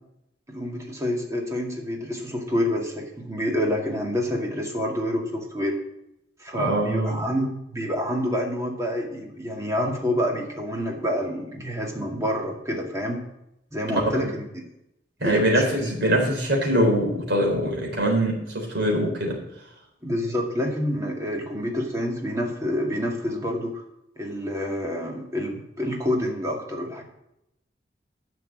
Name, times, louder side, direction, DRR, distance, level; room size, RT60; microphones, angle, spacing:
voice 1, 0.5-5.8 6.4-13.2 13.7-14.4 15.2-15.9 20.0-23.8 24.2-27.0, equal, 15° right, 0 dB, 2.1 m, -28 dB
voice 2, 6.6-7.2 13.9-14.0 15.2-19.4, right 1 dB, 70° right, -1 dB, 4.0 m, -23 dB
10.5 x 6.1 x 7.5 m, 0.83 s
head